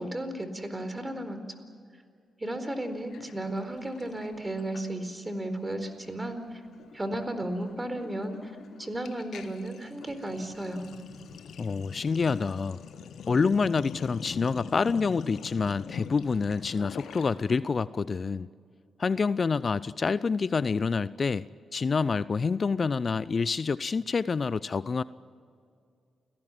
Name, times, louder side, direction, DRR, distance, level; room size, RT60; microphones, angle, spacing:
voice 1, 0.0-1.4 2.4-6.6 6.9-8.5 8.8-10.9, right 1 dB, 20° right, 9 dB, 4.3 m, -34 dB
Sink (filling or washing), 3.1-5.3 5.6-5.9 6.1-17.6, left 7 dB, 70° left, 1.2 m, -44 dB
voice 2, 11.6-12.8 13.3-18.5 19.0-21.5 21.7-25.0, left 5 dB, 45° left, 18 dB, 0.5 m, -27 dB
29.5 x 18.0 x 7.5 m, 2.3 s
hypercardioid pair, 40°, 0 cm